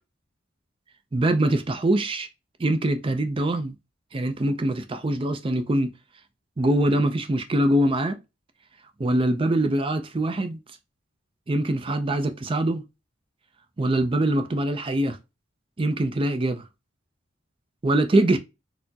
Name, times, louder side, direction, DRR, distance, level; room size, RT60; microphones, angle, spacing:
voice 1, 1.1-2.3 2.6-3.7 4.1-5.9 6.6-8.2 9.0-10.6 11.5-12.8 13.8-15.2 15.8-16.7 17.8-18.4, right 1 dB, 25° right, 0.4 m, -23 dB
4.2 x 2.1 x 2.7 m
head